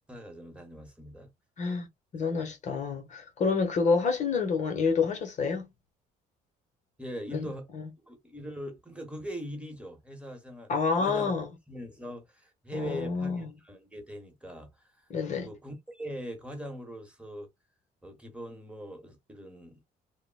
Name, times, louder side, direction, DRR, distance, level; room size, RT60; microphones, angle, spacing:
voice 1, 0.1-1.3 7.0-7.7 8.0-10.7 11.0-11.3 11.7-17.5 18.0-20.0, equal, 5° right, 1.1 m, -41 dB
voice 2, 1.6-1.9 2.1-5.7 7.3-7.5 7.7-7.8 10.7-11.5 12.7-13.5 15.1-15.5, left 5 dB, 45° left, 0.9 m, -28 dB
3.7 x 2.1 x 2.2 m
cardioid pair, 110°, 17 cm